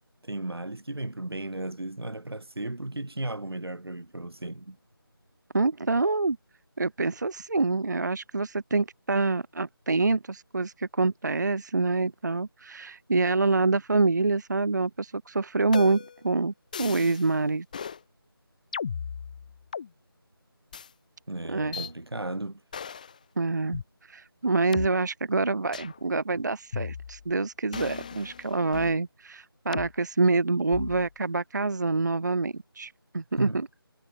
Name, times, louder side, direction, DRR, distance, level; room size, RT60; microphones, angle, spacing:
voice 1, 0.2-4.8 21.3-22.6 26.3-26.4 33.4-33.6, right 2 dB, 80° right, 1.7 m, -35 dB
voice 2, 5.5-6.4 6.8-16.5 16.8-17.7 21.5-21.8 23.4-23.8 24.1-33.7, right 3 dB, 50° right, 0.4 m, -26 dB
sound 1, 15.7-16.2 16.7-17.3 17.7-18.0 18.7-19.9 20.7-20.9 21.7-21.9 22.7-23.1 23.7-23.8 24.7-24.9 25.7-26.0 26.7-27.3 27.7-29.0 29.7-29.9 30.7-31.1, left 6 dB, 20° left, 1.6 m, -36 dB
figure-of-eight pair, 165°, 13 cm